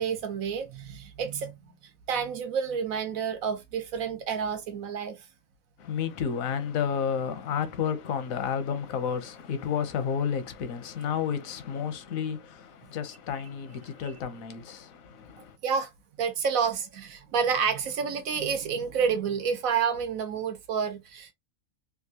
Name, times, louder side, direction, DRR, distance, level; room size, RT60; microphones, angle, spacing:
voice 1, 0.0-1.7 2.1-5.2 15.6-15.9 16.2-21.3, right 6 dB, 85° right, 1.2 m, -29 dB
voice 2, 5.8-15.6, left 7 dB, 85° left, 1.1 m, -31 dB
3.6 x 2.4 x 2.7 m
omnidirectional pair, 1.4 m